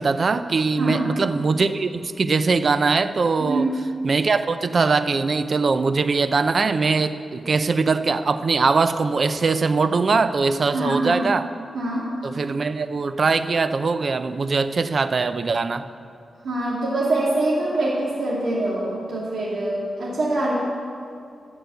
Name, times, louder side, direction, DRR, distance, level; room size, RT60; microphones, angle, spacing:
voice 1, 0.0-3.7 4.0-11.5 12.2-15.9, right 4 dB, 50° right, 11 dB, 0.5 m, -21 dB
voice 2, 0.8-1.1 3.4-3.7 10.7-11.2 11.7-12.1 16.4-20.5, right 2 dB, 90° right, -7 dB, 2.4 m, -24 dB
11.5 x 7.1 x 8.3 m, 2.4 s
wide cardioid pair, 120°, 0 cm